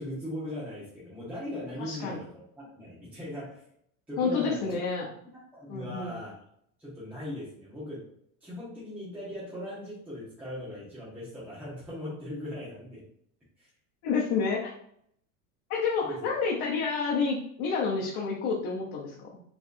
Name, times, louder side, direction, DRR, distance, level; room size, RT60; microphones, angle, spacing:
voice 1, 0.0-3.6 4.1-4.8 5.3-6.4 6.8-8.1 8.4-13.1 13.6-13.7 16.0-16.3, left 1 dB, 5° right, -10 dB, 1.3 m, -39 dB
voice 2, 1.8-2.2 4.2-5.1 5.7-6.1 14.0-14.7 15.7-19.4, left 5 dB, 60° left, -3 dB, 1.0 m, -29 dB
4.6 x 3.3 x 2.7 m, 0.69 s
supercardioid pair, 130°, 42 cm